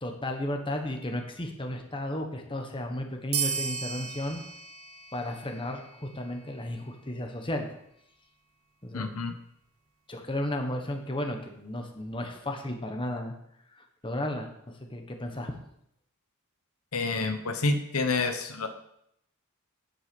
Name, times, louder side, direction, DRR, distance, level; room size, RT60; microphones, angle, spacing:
voice 1, 0.0-4.4 5.1-7.7 8.8-9.1 10.1-13.3 13.7-15.5, left 1 dB, 20° left, 3 dB, 1.3 m, -34 dB
sound 1, 3.3-6.4, right 7 dB, 70° right, 1.8 m, -35 dB
voice 2, 8.9-9.3 16.9-18.7, left 3 dB, 75° left, 7 dB, 1.0 m, -28 dB
9.9 x 8.0 x 5.4 m, 0.75 s
head